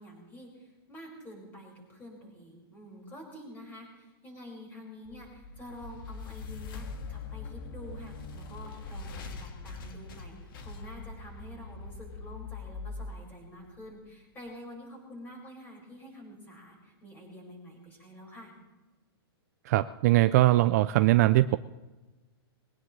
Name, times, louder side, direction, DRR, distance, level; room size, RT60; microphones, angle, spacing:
voice 1, 0.0-18.5, left 1 dB, 15° left, -1 dB, 5.5 m, -48 dB
sound 1, 5.1-14.2, left 3 dB, 60° left, 1.8 m, -42 dB
voice 2, 19.7-21.6, right 16 dB, 40° right, 12 dB, 0.4 m, -21 dB
21.5 x 17.5 x 3.2 m, 1.1 s
hypercardioid pair, 160°, 13 cm